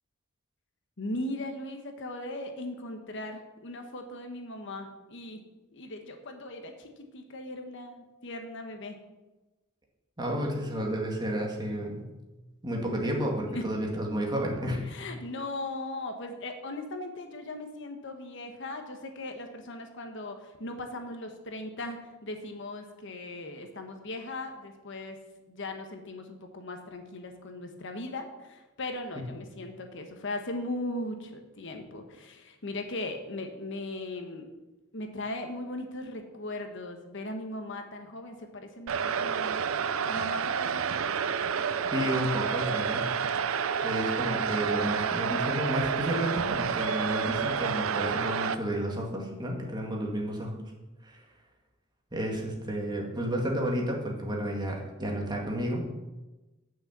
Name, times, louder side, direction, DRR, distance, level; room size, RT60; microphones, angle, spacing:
voice 1, 1.0-5.4 5.7-9.0 13.5-13.7 14.9-25.2 25.5-34.5 34.9-39.6 40.1-41.1, left 2 dB, 65° left, 5 dB, 1.2 m, -38 dB
voice 2, 10.2-12.1 12.6-14.8 41.9-43.1 43.8-50.5 51.0-51.2 52.1-55.9, equal, 20° right, -1 dB, 2.0 m, -31 dB
sound 1, 38.9-48.5, right 7 dB, 90° right, 0.5 m, -29 dB
8.9 x 6.4 x 7.4 m, 1.1 s
head